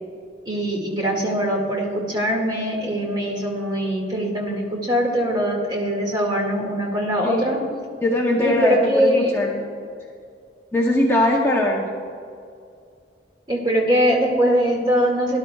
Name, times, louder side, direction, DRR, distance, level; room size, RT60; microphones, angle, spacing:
voice 1, 0.5-7.6 8.4-9.3 13.5-15.4, equal, 25° right, -1 dB, 2.0 m, -22 dB
voice 2, 8.0-9.6 10.7-11.9, left 1 dB, 15° left, -2 dB, 0.7 m, -20 dB
17.5 x 11.5 x 2.3 m, 2.3 s
head